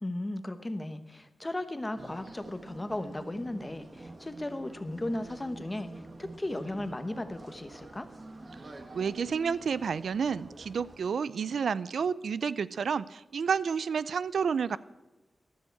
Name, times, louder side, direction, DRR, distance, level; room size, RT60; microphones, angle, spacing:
voice 1, 0.0-5.9 6.2-8.1, left 1 dB, 15° left, 10 dB, 1.0 m, -36 dB
sound 1, 2.0-11.0, right 2 dB, 35° right, 1.4 m, -47 dB
voice 2, 8.9-14.8, right 6 dB, 90° right, 18 dB, 0.4 m, -30 dB
14.5 x 12.5 x 4.6 m, 1.1 s
wide cardioid pair, 150°, 0 cm